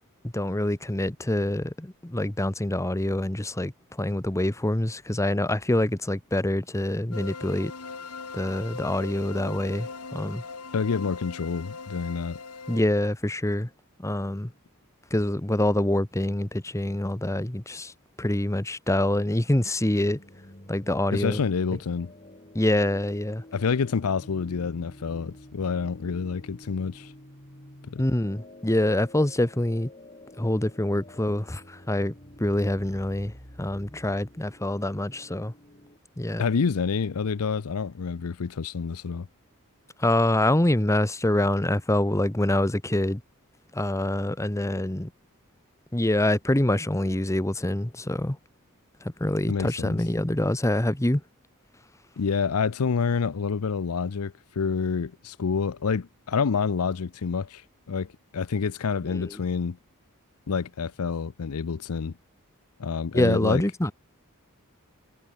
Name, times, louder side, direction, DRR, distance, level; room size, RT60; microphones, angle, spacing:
voice 1, 0.2-3.7 4.0-7.7 8.3-10.4 12.7-13.7 14.0-14.5 15.1-17.9 18.2-20.2 20.7-21.4 22.5-23.4 28.0-29.9 30.4-32.1 32.4-35.5 36.2-36.5 40.0-43.2 43.7-45.1 45.9-48.4 49.0-51.2 59.1-59.4 63.1-63.9, left 1 dB, 15° left, 1.1 m, -25 dB
sound 1, 7.1-12.8, left 4 dB, 85° left, 2.3 m, -39 dB
voice 2, 10.7-12.4 21.1-22.1 23.5-27.1 27.9-28.0 36.4-39.3 49.5-50.0 52.2-59.8 60.5-62.2 62.8-63.6, left 5 dB, 70° left, 0.6 m, -28 dB
sound 2, 19.9-36.0, left 1 dB, 30° left, 6.2 m, -49 dB
head